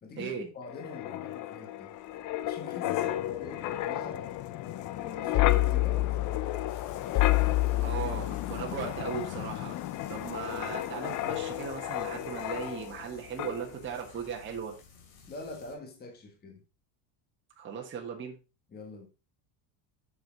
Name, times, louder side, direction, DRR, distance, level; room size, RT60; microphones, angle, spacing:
voice 1, 0.0-1.9 2.4-4.4 4.9-6.6 15.3-16.6 18.7-19.1, left 3 dB, 20° left, 1.2 m, -45 dB
Wind, 0.7-13.1 13.4-13.6, left 15 dB, 40° left, 0.4 m, -30 dB
Frying (food), 6.7-15.8, left 6 dB, 90° left, 2.8 m, -54 dB
voice 2, 7.8-9.8 10.1-14.7 17.6-18.4, right 7 dB, 25° right, 1.4 m, -37 dB
7.9 x 6.4 x 3.9 m
cardioid pair, 170°, 49 cm